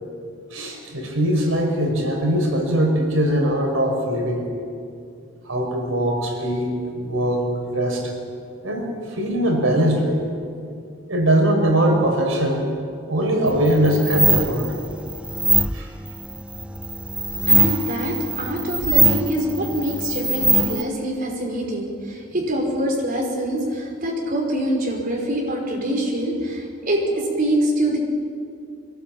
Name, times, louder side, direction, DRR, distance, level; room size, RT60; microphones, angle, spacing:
voice 1, 0.5-4.5 5.4-6.7 7.0-8.1 8.6-10.2 11.1-12.6 13.1-14.7 15.7-15.9, right 1 dB, 80° right, 1 dB, 5.3 m, -21 dB
sound 1, 13.5-20.8, right 2 dB, 5° right, 0.6 m, -22 dB
voice 2, 17.5-28.0, right 1 dB, 45° right, -1 dB, 5.2 m, -24 dB
24.0 x 20.5 x 8.8 m, 2.4 s
head